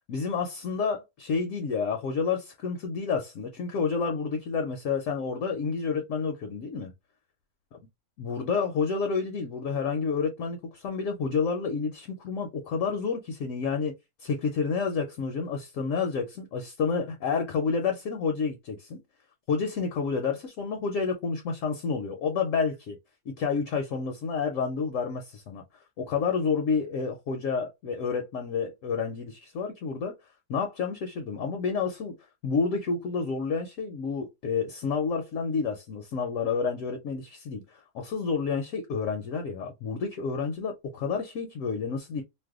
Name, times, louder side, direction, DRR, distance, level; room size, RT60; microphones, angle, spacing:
voice 1, 0.1-6.9 8.2-13.9 14.2-19.0 19.5-23.0 23.3-25.6 26.0-30.1 30.5-32.1 32.4-42.2, left 5 dB, 65° left, 0.9 m, -29 dB
2.6 x 2.2 x 3.5 m
omnidirectional pair, 1.6 m